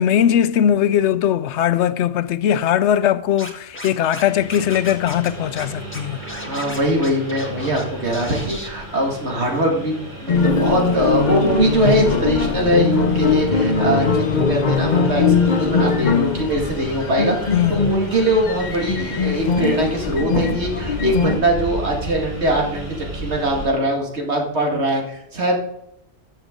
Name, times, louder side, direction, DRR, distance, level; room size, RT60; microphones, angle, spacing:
voice 1, 0.0-6.2 17.5-17.9, left 10 dB, 85° left, 0.9 m, -19 dB
Scratching (performance technique), 3.4-4.2 4.5-5.3 5.6-5.7 5.9-7.8 8.1-8.7, left 1 dB, 10° left, 1.5 m, -34 dB
Engine, 4.1-23.7, right 1 dB, 50° right, 4.8 m, -34 dB
voice 2, 6.5-25.6, right 1 dB, 75° right, 2.4 m, -22 dB
sound 1, 10.3-21.4, left 4 dB, 45° left, 0.8 m, -20 dB
13.0 x 7.0 x 3.8 m
omnidirectional pair, 1.1 m